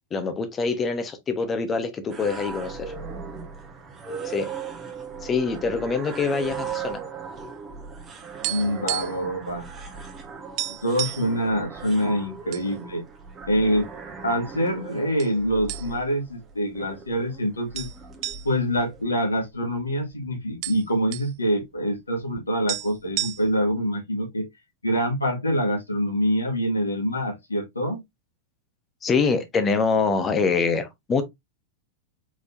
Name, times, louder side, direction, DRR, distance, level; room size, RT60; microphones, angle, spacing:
voice 1, 0.1-2.9 4.2-4.5 5.2-7.0 29.0-31.2, left 4 dB, 20° left, 1.2 m, -25 dB
sound 1, 2.1-19.0, right 5 dB, 25° right, 1.4 m, -38 dB
sound 2, 8.4-9.3 9.6-9.8 10.1-10.2 10.6-11.3 12.0-12.7 13.1-13.2 13.9-14.5 15.2-15.4 15.7-16.2 16.6-16.7 17.7-19.8 20.1-20.2 20.4-21.3 22.4-22.5 22.7-23.7, right 15 dB, 40° right, 0.5 m, -32 dB
voice 2, 8.5-9.7 10.8-13.0 13.5-13.9 14.2-17.9 18.4-24.5 24.8-28.0, equal, 80° left, 1.9 m, -25 dB
4.9 x 4.0 x 2.7 m
figure-of-eight pair, 90°, 0 cm